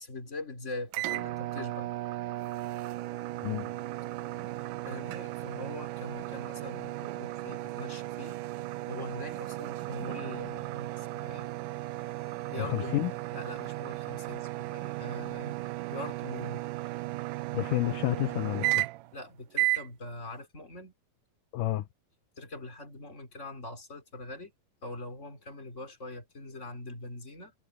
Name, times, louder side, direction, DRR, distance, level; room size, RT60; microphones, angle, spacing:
voice 1, 0.0-1.9 4.8-8.4 8.9-11.5 12.5-15.6 15.9-16.7 19.1-20.9 22.4-24.5 24.8-27.5, left 2 dB, 20° left, 3.9 m, -42 dB
sound 1, 0.9-19.2 19.5-19.9, right 18 dB, 75° right, 2.1 m, -35 dB
voice 2, 12.6-13.1 17.5-18.8 21.5-21.9, left 16 dB, 75° left, 2.2 m, -30 dB
omnidirectional pair, 3.9 m